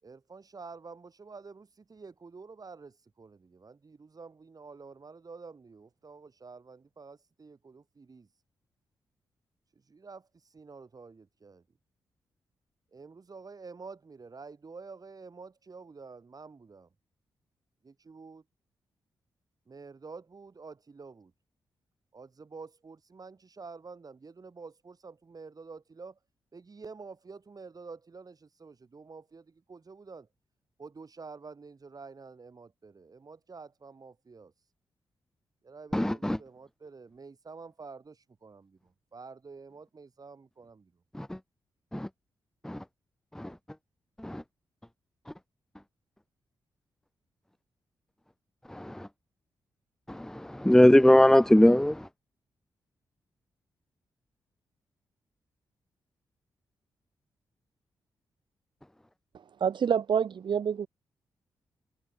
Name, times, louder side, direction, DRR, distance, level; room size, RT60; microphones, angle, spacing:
voice 1, 0.0-8.3 9.8-11.6 12.9-16.9 17.8-18.4 19.7-21.3 22.1-26.2 26.5-30.3 30.8-34.5 35.6-40.9, right 4 dB, 45° right, 7.4 m, -48 dB
voice 2, 35.9-36.4 41.2-41.3 41.9-42.1 42.6-42.8 43.4-43.5 44.2-44.4 48.7-49.1 50.1-52.0, left 1 dB, 5° left, 1.0 m, -21 dB
voice 3, 59.6-60.9, right 7 dB, 65° right, 1.0 m, -27 dB
supercardioid pair, 50°, 9 cm